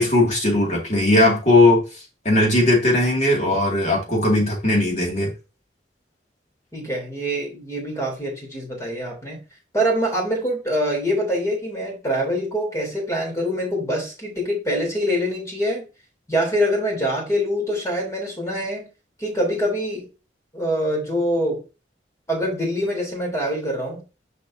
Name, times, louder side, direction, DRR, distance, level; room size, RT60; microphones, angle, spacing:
voice 1, 0.0-1.8 2.2-5.3, left 2 dB, 40° left, -1 dB, 2.3 m, -18 dB
voice 2, 6.7-9.4 9.7-15.8 16.3-18.9 19.2-20.0 20.5-21.6 22.3-24.0, equal, 15° left, -1 dB, 3.5 m, -24 dB
6.8 x 5.2 x 2.7 m, 0.30 s
head